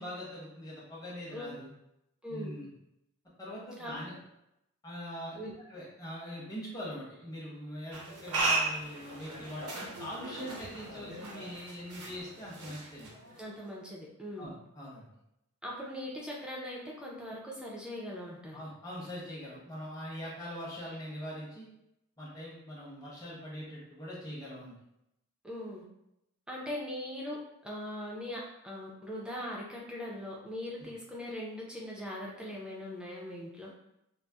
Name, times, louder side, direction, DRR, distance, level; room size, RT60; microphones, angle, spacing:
voice 1, 0.0-1.7 2.3-2.7 3.4-4.2 4.8-5.4 5.7-13.2 14.4-15.1 18.5-21.7 22.2-24.7 30.8-30.9, equal, 15° left, -7 dB, 0.8 m, -42 dB
voice 2, 2.2-2.6 3.8-4.0 5.3-5.5 13.4-14.5 15.6-18.6 25.4-25.8 26.5-33.7, left 1 dB, 5° right, -4 dB, 0.4 m, -40 dB
sound 1, 7.9-13.6, right 2 dB, 80° right, 0.6 m, -36 dB
3.9 x 2.0 x 2.3 m, 0.85 s
head